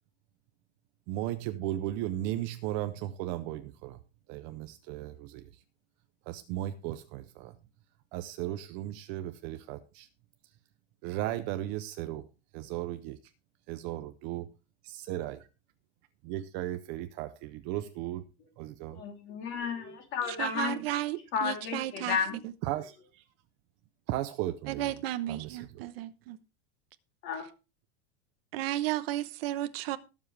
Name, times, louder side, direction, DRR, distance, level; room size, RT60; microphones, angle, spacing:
voice 1, 1.1-4.0 4.3-5.6 6.3-7.6 8.1-10.1 11.0-12.3 12.5-13.2 13.7-14.5 14.8-15.5 16.2-18.3 18.6-19.0 22.6-23.2 24.1-24.9 25.3-25.8, right 14 dB, 35° right, 0.6 m, -36 dB
voice 2, 18.9-20.8 21.3-22.4 27.2-27.5, left 6 dB, 35° left, 3.2 m, -32 dB
voice 3, 20.3-22.2 24.7-26.4 28.5-30.0, right 14 dB, 55° right, 0.9 m, -33 dB
19.5 x 7.2 x 3.3 m
supercardioid pair, 175°, 35 cm